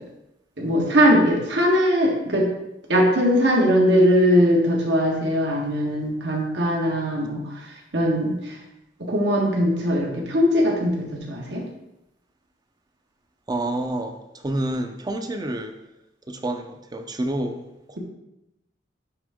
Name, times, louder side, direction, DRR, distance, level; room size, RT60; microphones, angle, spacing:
voice 1, 0.6-2.5 2.9-7.5 7.9-8.5 9.1-11.6, equal, 75° right, -1 dB, 1.6 m, -20 dB
voice 2, 13.5-15.7 16.3-18.0, right 1 dB, 20° right, 6 dB, 0.5 m, -29 dB
9.9 x 3.8 x 3.6 m, 0.90 s
head